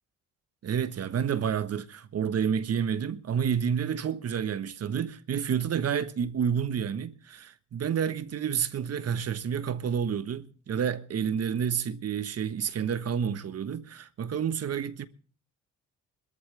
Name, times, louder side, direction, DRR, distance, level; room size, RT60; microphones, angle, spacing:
voice 1, 0.6-15.1, right 7 dB, 55° right, 1.3 m, -29 dB
21.5 x 14.0 x 3.4 m
cardioid pair, 90°, 30 cm